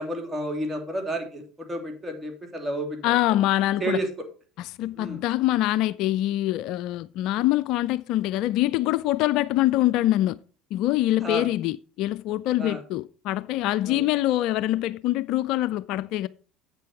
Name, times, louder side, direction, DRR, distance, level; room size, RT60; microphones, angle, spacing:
voice 1, 0.0-3.1 3.8-4.1 5.0-5.2 11.2-11.4 12.6-12.8 13.9-14.0, right 1 dB, 20° right, 2.9 m, -31 dB
voice 2, 3.0-4.1 4.6-10.4 10.7-16.3, left 15 dB, 60° left, 0.3 m, -24 dB
8.3 x 6.8 x 4.7 m
hypercardioid pair, 70°, 0 cm